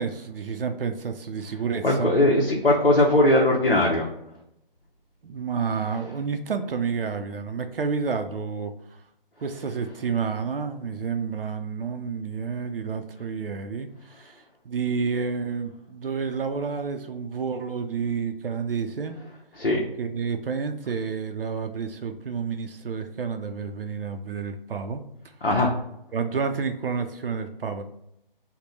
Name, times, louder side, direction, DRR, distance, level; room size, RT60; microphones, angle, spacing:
voice 1, 0.0-2.1 5.2-8.7 9.4-19.2 20.0-25.3 26.1-27.8, right 5 dB, 70° right, 7 dB, 0.5 m, -30 dB
voice 2, 1.8-4.1 19.6-19.8 25.4-25.7, left 1 dB, 85° left, -2 dB, 0.8 m, -19 dB
3.5 x 2.1 x 4.0 m, 0.80 s
figure-of-eight pair, 145°, 29 cm